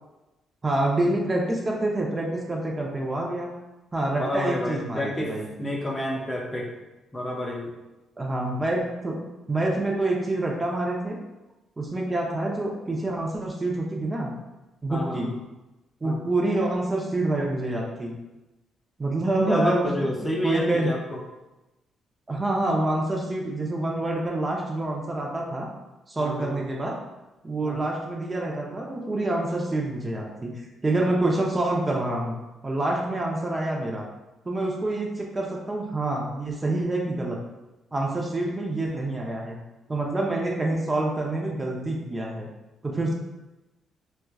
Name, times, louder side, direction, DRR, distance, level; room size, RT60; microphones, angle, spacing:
voice 1, 0.6-3.5 3.9-5.5 8.2-9.1 9.5-11.2 11.8-14.3 14.8-15.3 16.0-18.1 19.0-19.9 20.2-20.9 22.3-25.7 26.1-27.0 27.4-30.5 30.8-34.0 34.5-37.4 37.9-39.6 39.9-42.5 42.8-43.1, right 2 dB, 25° right, -1 dB, 0.6 m, -27 dB
voice 2, 4.1-6.7 7.1-7.7 14.9-15.3 16.0-16.2 19.5-21.2 26.2-26.6 27.6-27.8, left 1 dB, 20° left, -1 dB, 0.7 m, -29 dB
4.3 x 2.4 x 2.3 m, 1.0 s
cardioid pair, 90°, 0 cm